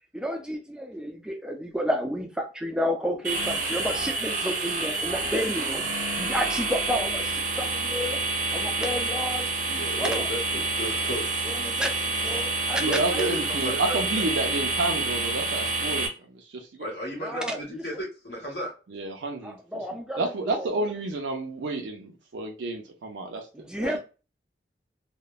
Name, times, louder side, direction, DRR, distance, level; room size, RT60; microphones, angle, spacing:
voice 1, 0.1-5.8 6.2-8.2 8.5-9.5 10.0-10.3 11.4-13.2 17.2-17.6 19.4-20.2 20.5-20.7 23.5-24.0, equal, 5° right, 0.3 m, -31 dB
sound 1, 3.2-16.1, right 3 dB, 45° right, 0.6 m, -28 dB
voice 2, 9.6-11.3 12.8-14.2 16.8-18.7 23.8-24.0, equal, 65° left, 1.4 m, -34 dB
voice 3, 12.8-16.9 18.9-19.6 20.2-23.5, right 2 dB, 90° right, 0.5 m, -30 dB
2.9 x 2.1 x 2.2 m
head